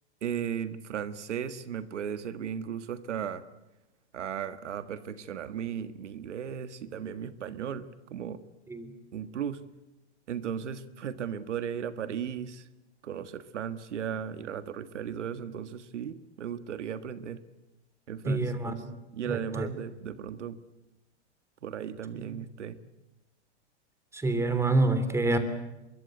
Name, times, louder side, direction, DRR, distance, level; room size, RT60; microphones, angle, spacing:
voice 1, 0.2-3.4 4.1-8.4 9.1-9.6 10.3-12.7 13.0-17.4 18.1-18.9 19.1-20.6 21.6-22.8, right 8 dB, 90° right, 12 dB, 1.7 m, -36 dB
voice 2, 18.3-18.8 19.2-19.7 24.1-25.4, right 2 dB, 10° right, 10 dB, 3.1 m, -27 dB
24.0 x 23.0 x 7.9 m, 1.0 s
hypercardioid pair, 135°, 35 cm